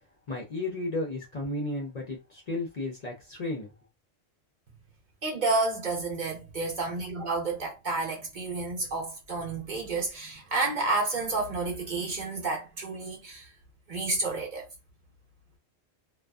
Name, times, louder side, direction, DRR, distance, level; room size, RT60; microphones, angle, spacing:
voice 1, 0.3-3.7, left 2 dB, 50° left, 0.6 m, -33 dB
voice 2, 5.2-13.5 13.9-14.7, right 3 dB, 50° right, 0.8 m, -30 dB
2.5 x 2.3 x 2.3 m
omnidirectional pair, 1.1 m